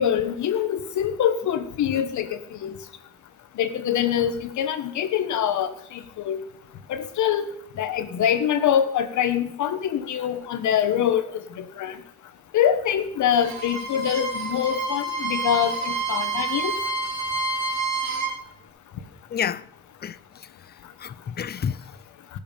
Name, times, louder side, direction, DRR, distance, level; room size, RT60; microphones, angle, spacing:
voice 1, 0.0-2.7 3.6-6.4 6.9-7.5 7.8-12.0 12.5-16.7, left 9 dB, 70° left, 1.3 m, -24 dB
Bowed string instrument, 13.3-18.3, right 3 dB, 60° right, 4.4 m, -28 dB
voice 2, 19.3-19.7 20.0-20.7 21.0-21.8, left 8 dB, 35° left, 0.5 m, -30 dB
17.5 x 7.2 x 5.3 m
cardioid pair, 90°, 30 cm